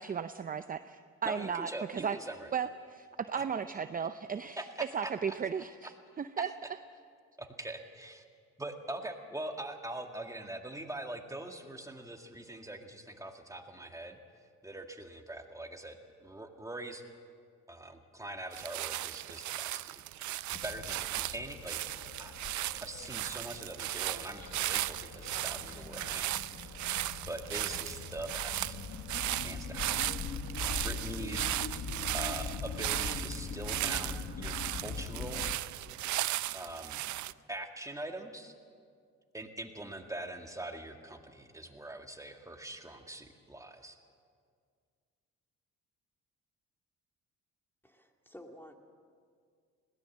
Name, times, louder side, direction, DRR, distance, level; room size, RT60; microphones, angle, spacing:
voice 1, 0.0-2.2 2.5-4.6 4.9-5.9 6.2-6.5, right 7 dB, 30° right, 10 dB, 0.6 m, -35 dB
voice 2, 1.2-2.5 4.6-4.7 5.0-5.1 7.4-8.2 8.6-14.2 14.6-17.0 17.7-19.9 20.2-21.9 22.2-22.3 22.8-26.3 26.7-26.8 27.3-28.8 29.4-29.9 30.8-31.9 32.1-35.4 36.5-37.1 37.5-38.5 39.3-44.0, right 1 dB, 10° right, 4 dB, 2.0 m, -43 dB
sound 1, 18.5-37.3, right 15 dB, 75° right, 0.5 m, -36 dB
sound 2, 20.5-35.6, left 5 dB, 55° left, 1.3 m, -42 dB
voice 3, 47.8-48.7, left 1 dB, 5° left, 3 dB, 2.2 m, -51 dB
21.0 x 17.5 x 7.5 m, 2.1 s
cardioid pair, 90°, 30 cm